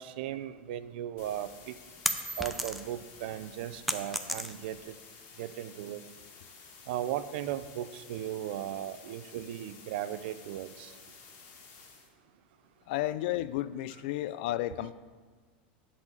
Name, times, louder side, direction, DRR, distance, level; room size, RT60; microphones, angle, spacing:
voice 1, 0.0-1.7 2.4-4.8 5.4-6.0 6.9-10.9, right 11 dB, 70° right, 0.6 m, -37 dB
sound 1, 1.2-12.1, left 5 dB, 45° left, 1.9 m, -53 dB
sound 2, 1.6-3.1 3.4-4.9, equal, ahead, 0.5 m, -34 dB
voice 2, 12.9-14.9, left 14 dB, 65° left, 0.4 m, -32 dB
10.5 x 4.1 x 7.3 m
supercardioid pair, 135°, 6 cm